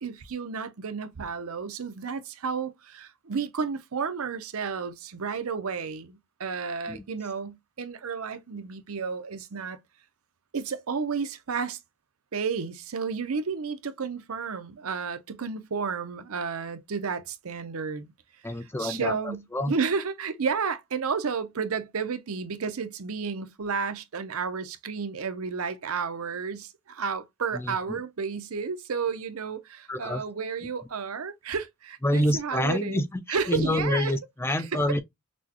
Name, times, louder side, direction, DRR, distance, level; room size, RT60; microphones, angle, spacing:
voice 1, 0.0-9.8 10.5-11.8 12.3-18.1 18.8-33.0 33.3-34.1 34.7-34.8, right 5 dB, 75° right, 0.7 m, -32 dB
voice 2, 18.4-19.7 27.5-28.0 29.9-30.2 32.0-35.0, left 1 dB, 10° left, 0.4 m, -27 dB
6.1 x 2.2 x 2.8 m
head